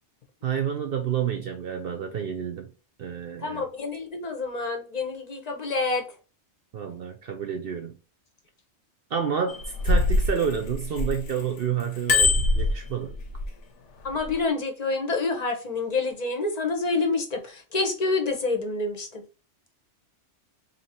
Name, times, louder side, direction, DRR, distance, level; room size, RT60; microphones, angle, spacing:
voice 1, 0.4-2.7 3.0-3.6 6.7-7.9 9.1-13.1, right 7 dB, 60° right, 0.7 m, -29 dB
voice 2, 3.4-6.0 14.0-19.2, left 3 dB, 40° left, 0.8 m, -27 dB
Bicycle bell, 9.5-11.4 11.8-13.5 14.1-14.3, left 2 dB, 85° left, 1.1 m, -23 dB
2.8 x 2.8 x 4.2 m
omnidirectional pair, 1.2 m